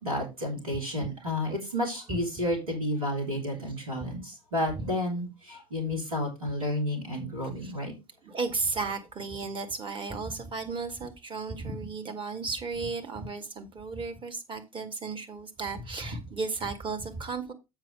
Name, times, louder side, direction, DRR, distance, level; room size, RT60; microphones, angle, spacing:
voice 1, 0.0-7.9, left 1 dB, 80° right, 3.1 m, -31 dB
voice 2, 8.2-17.5, right 4 dB, 30° right, 1.9 m, -34 dB
7.5 x 5.8 x 4.9 m
figure-of-eight pair, 65°, 18 cm